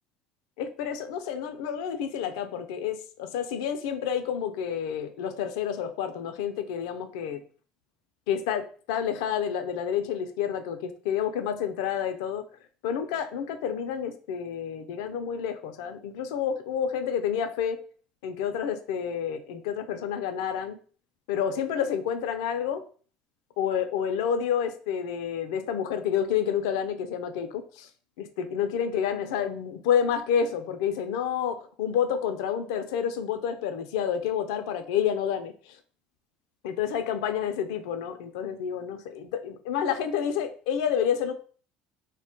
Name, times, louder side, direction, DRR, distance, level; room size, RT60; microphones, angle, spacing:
voice 1, 0.6-7.4 8.3-12.4 12.8-17.8 18.2-20.8 21.3-22.8 23.6-27.9 28.2-35.5 36.6-41.3, left 8 dB, 80° left, 7 dB, 0.4 m, -29 dB
2.2 x 2.1 x 3.7 m, 0.41 s
supercardioid pair, 85°, 3 cm